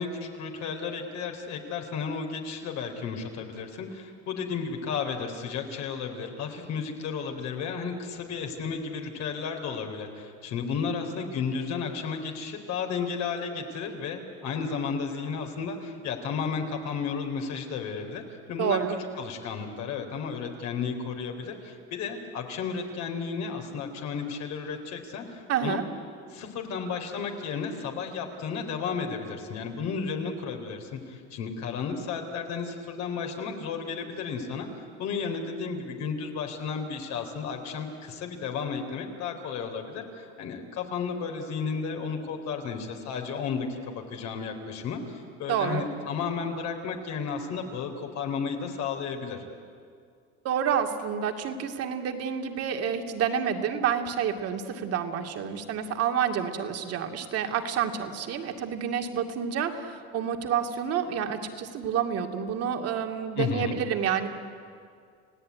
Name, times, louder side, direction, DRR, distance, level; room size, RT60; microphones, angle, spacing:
voice 1, 0.0-18.2 18.5-18.8 19.1-25.8 26.2-49.4 63.4-63.7, left 5 dB, 60° left, 3 dB, 3.8 m, -33 dB
voice 2, 18.6-19.0 25.5-25.8 45.5-45.8 50.4-64.3, right 8 dB, 50° right, 5 dB, 2.4 m, -29 dB
30.0 x 17.0 x 9.5 m, 2.3 s
cardioid pair, 135°, 31 cm